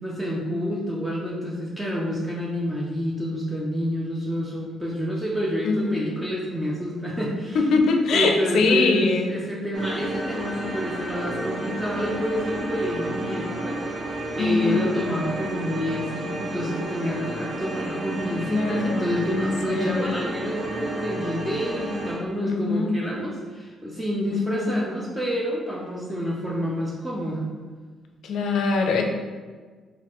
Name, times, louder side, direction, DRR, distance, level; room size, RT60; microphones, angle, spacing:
voice 1, 0.0-7.6 8.1-13.8 14.3-27.5, equal, 10° right, -5 dB, 0.6 m, -28 dB
voice 2, 5.6-6.0 7.5-9.3 14.4-14.9 18.5-20.1 22.4-22.9 24.3-24.8 28.2-29.0, left 4 dB, 70° left, 3 dB, 0.4 m, -23 dB
sound 1, 9.7-22.1, right 1 dB, 40° right, 1.1 m, -32 dB
4.0 x 2.4 x 3.0 m, 1.5 s
cardioid pair, 90°, 0 cm